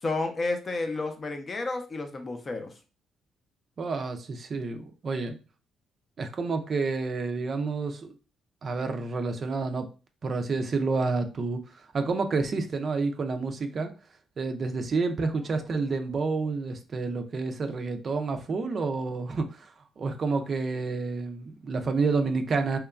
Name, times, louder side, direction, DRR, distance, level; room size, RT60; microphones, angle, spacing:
voice 1, 0.0-2.7 15.5-15.6, left 3 dB, 35° left, 0.5 m, -31 dB
voice 2, 3.8-5.4 6.2-8.1 8.6-9.9 10.2-13.9 14.4-19.7 20.0-22.8, right 4 dB, 45° right, 0.4 m, -29 dB
2.9 x 2.2 x 2.4 m
cardioid pair, 90°, 0 cm